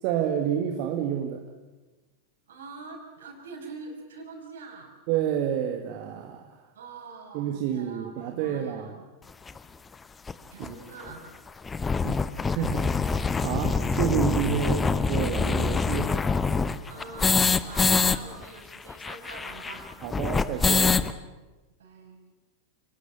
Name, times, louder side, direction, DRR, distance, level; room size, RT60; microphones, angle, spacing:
voice 1, 0.0-1.5 5.1-6.4 7.3-9.0 10.6-10.8 12.0-16.2 20.0-21.0, right 9 dB, 45° right, 4 dB, 2.0 m, -29 dB
voice 2, 2.5-4.9 6.7-8.9 10.5-11.3 16.9-20.0 21.8-22.2, right 4 dB, 65° right, 3 dB, 5.9 m, -44 dB
sound 1, 9.5-9.6 10.3-10.4 10.6-10.7 11.0-11.1 11.5-18.2 18.4-18.5 18.7-21.1, left 4 dB, 15° left, 1.0 m, -25 dB
29.5 x 20.0 x 7.1 m, 1.2 s
figure-of-eight pair, 90°, 0 cm